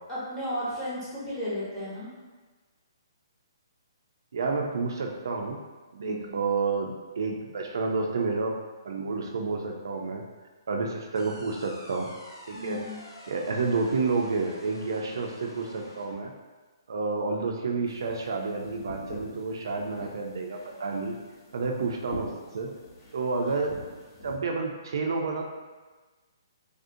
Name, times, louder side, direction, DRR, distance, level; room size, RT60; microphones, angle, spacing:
voice 1, 0.1-2.1 6.0-6.4 12.5-13.0, left 1 dB, 5° left, -12 dB, 0.9 m, -34 dB
voice 2, 4.3-5.6 5.9-8.6 8.8-10.2 10.7-12.1 12.5-12.8 13.3-16.3 16.9-21.2 21.5-22.7 23.1-23.8 24.2-25.5, right 4 dB, 60° right, 1 dB, 0.3 m, -30 dB
sound 1, 11.1-16.1, left 1 dB, 80° left, 0.7 m, -46 dB
sound 2, 17.8-24.4, left 1 dB, 35° left, 0.7 m, -45 dB
3.4 x 2.5 x 2.5 m, 1.3 s
hypercardioid pair, 175°, 2 cm